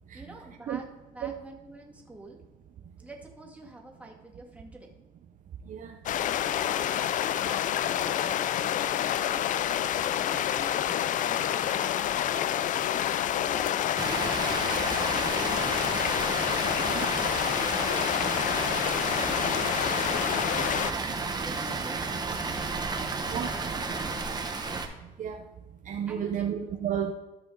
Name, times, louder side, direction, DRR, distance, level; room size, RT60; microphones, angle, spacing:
voice 1, 0.1-2.4 3.0-4.9 6.4-12.9 13.4-16.0 16.8-18.8 19.2-21.1 21.4-22.6 23.1-24.3 26.1-26.3, right 2 dB, 10° right, -1 dB, 2.1 m, -47 dB
sound 1, 6.1-20.9, left 11 dB, 50° left, 0.4 m, -28 dB
Water, 14.0-24.9, right 4 dB, 25° right, 1.1 m, -32 dB
voice 2, 25.9-27.1, right 9 dB, 50° right, 4 dB, 0.7 m, -32 dB
14.0 x 5.1 x 3.9 m, 1.1 s
cardioid pair, 110°, 17 cm